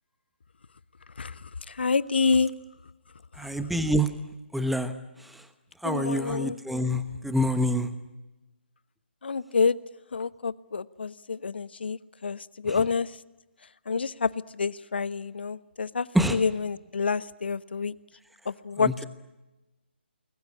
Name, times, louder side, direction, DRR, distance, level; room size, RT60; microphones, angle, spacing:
voice 1, 1.2-2.5 3.4-3.5 5.8-6.6 9.2-9.8 10.1-13.2 13.9-17.9 18.4-19.0, left 5 dB, 65° left, 17 dB, 1.1 m, -28 dB
voice 2, 3.4-4.1 4.5-4.9 5.2-5.4 5.8-7.9 12.7-12.8 16.1-16.4 18.8-19.0, equal, ahead, 10 dB, 1.1 m, -26 dB
29.5 x 21.5 x 8.6 m, 1.1 s
figure-of-eight pair, 145°, 6 cm